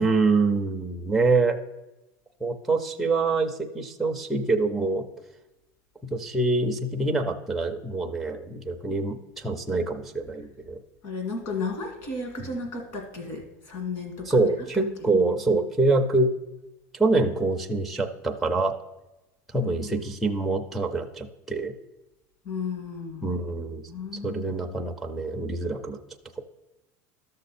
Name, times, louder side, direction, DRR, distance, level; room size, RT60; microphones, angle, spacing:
voice 1, 0.0-1.6 2.4-5.0 6.0-10.8 12.4-12.5 14.3-16.3 16.9-18.8 19.5-21.7 23.2-23.8 24.2-26.0 26.4-26.5, right 3 dB, ahead, 2 dB, 0.4 m, -25 dB
voice 2, 11.0-14.4 19.6-20.0 22.5-23.3 23.9-24.7, left 4 dB, 40° left, 3 dB, 2.0 m, -34 dB
12.5 x 6.5 x 4.2 m, 1.0 s
cardioid pair, 180°, 8 cm